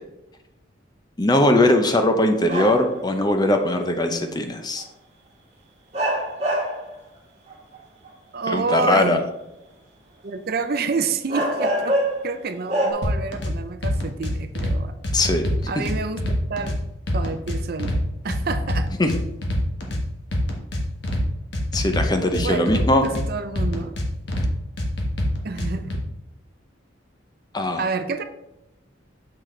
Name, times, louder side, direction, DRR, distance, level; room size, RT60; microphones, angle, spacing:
voice 1, 1.2-4.8 8.5-9.2 15.1-15.8 19.0-19.1 21.7-23.1 27.5-27.8, left 1 dB, 20° left, 5 dB, 0.6 m, -20 dB
sound 1, 2.5-3.0 4.8-4.9 5.9-6.9 7.5-8.1 10.6-10.7 11.3-12.3 12.7-12.9, right 1 dB, 35° right, 1.8 m, -24 dB
voice 2, 8.3-9.2 10.2-14.9 15.7-16.8 17.1-18.9 22.4-24.0 25.4-26.0 27.8-28.2, right 4 dB, 55° right, 9 dB, 0.5 m, -28 dB
sound 2, 13.0-13.5 13.8-14.7 15.0-16.8 17.1-18.0 18.3-20.0 20.3-21.2 21.5-23.3 23.6-24.5 24.8-26.0, equal, 65° left, 1.3 m, -25 dB
6.7 x 6.1 x 3.2 m, 0.91 s
head